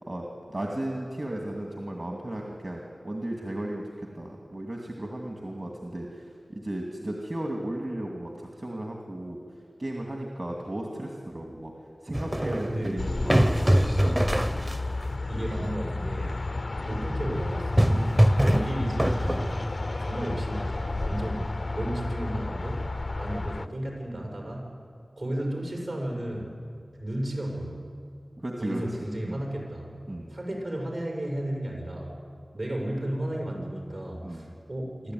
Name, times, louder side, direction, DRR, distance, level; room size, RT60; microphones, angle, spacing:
voice 1, 0.0-9.4 9.8-11.7 12.0-13.9 28.4-28.8 29.2-29.4 30.1-30.3 34.2-34.5, right 1 dB, 45° right, 0 dB, 2.4 m, -35 dB
sound 1, 12.1-15.1 17.4-19.8, equal, 15° right, 0.9 m, -23 dB
voice 2, 12.4-13.5 13.8-14.8 15.3-16.4 16.8-18.1 18.4-19.7 20.0-24.7 25.2-26.5 27.0-27.8 28.6-29.9 30.3-32.2 32.5-35.1, right 1 dB, 70° right, -1 dB, 6.2 m, -33 dB
sound 2, 13.0-23.7, left 2 dB, 55° left, 0.5 m, -32 dB
27.0 x 13.0 x 9.4 m, 2.3 s
wide cardioid pair, 70°, 0 cm